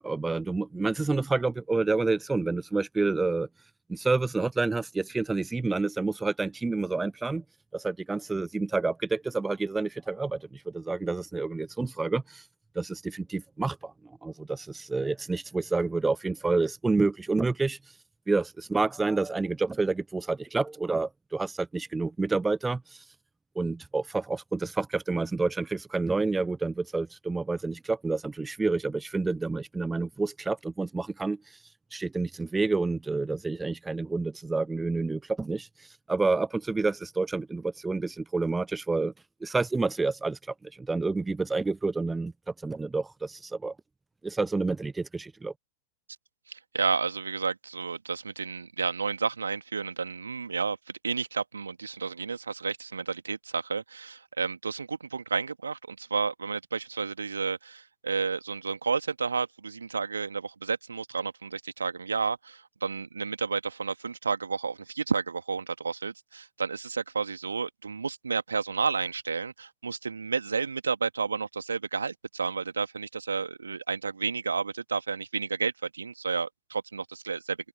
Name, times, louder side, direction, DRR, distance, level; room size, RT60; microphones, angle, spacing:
voice 1, 0.0-3.5 3.9-7.4 7.7-12.4 12.8-13.9 14.2-17.8 18.3-22.8 23.6-31.4 31.9-35.7 36.1-39.1 39.4-40.4 40.9-42.3 42.6-43.7 44.2-45.5, right 3 dB, 10° right, 0.5 m, -28 dB
voice 2, 46.7-50.8 51.0-77.6, right 5 dB, 75° right, 2.4 m, -31 dB
figure-of-eight pair, 90°, 0 cm